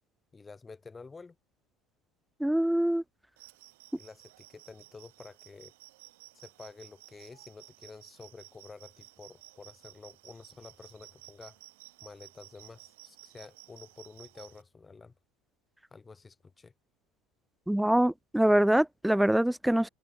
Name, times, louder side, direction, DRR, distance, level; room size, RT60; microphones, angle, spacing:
voice 1, 0.3-1.3 3.9-5.7 6.3-11.6 12.0-15.1 15.9-16.7, left 4 dB, 20° left, 6.1 m, -50 dB
voice 2, 2.4-3.0 17.7-19.9, right 1 dB, 5° right, 0.3 m, -24 dB
sound 1, 3.4-14.6, right 20 dB, 85° right, 3.8 m, -55 dB
supercardioid pair, 95°, 0 cm